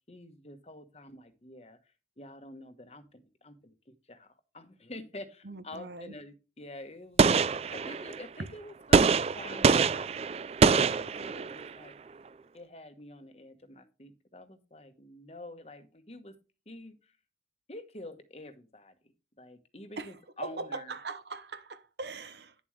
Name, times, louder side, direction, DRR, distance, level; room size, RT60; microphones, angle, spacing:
voice 1, 0.1-1.8 2.2-10.1 10.7-11.9 12.5-16.3 16.7-17.1 17.7-18.9 19.4-21.0, left 1 dB, 35° left, 1.1 m, -47 dB
voice 2, 5.4-6.1 20.0-20.2 20.4-22.5, right 3 dB, 75° right, 1.0 m, -40 dB
Gunshot gunfire, 7.2-8.2 8.9-11.7, right 5 dB, 35° right, 0.3 m, -24 dB
10.0 x 7.3 x 3.2 m
head